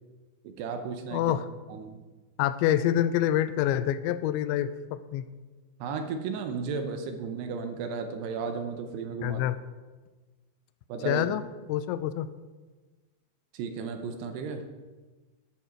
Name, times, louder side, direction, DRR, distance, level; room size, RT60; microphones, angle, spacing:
voice 1, 0.4-1.2 1.7-2.0 5.8-9.4 10.9-11.3 13.5-14.7, right 5 dB, 75° right, 6 dB, 2.7 m, -34 dB
voice 2, 1.1-1.5 2.4-5.3 9.2-9.6 11.0-11.4 11.7-12.3, left 11 dB, 90° left, 13 dB, 2.9 m, -26 dB
12.0 x 8.6 x 4.5 m, 1.3 s
omnidirectional pair, 5.1 m